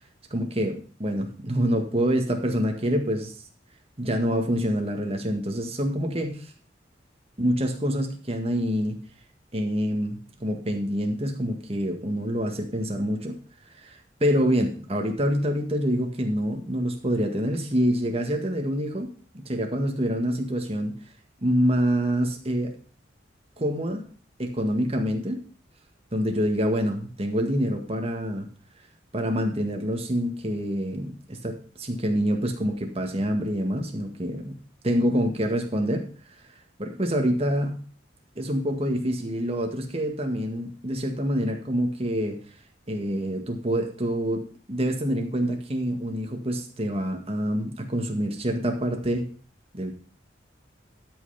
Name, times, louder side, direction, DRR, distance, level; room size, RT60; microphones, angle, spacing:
voice 1, 0.3-3.3 4.0-6.4 7.4-9.0 9.5-13.4 13.8-19.1 19.3-21.0 21.4-22.7 23.6-24.0 24.4-25.4 26.1-28.5 29.1-34.6 34.8-36.1 36.8-37.8 38.4-42.4 42.9-49.3 49.7-49.9, equal, 35° right, 4 dB, 1.8 m, -26 dB
12.5 x 5.6 x 5.8 m, 0.40 s
head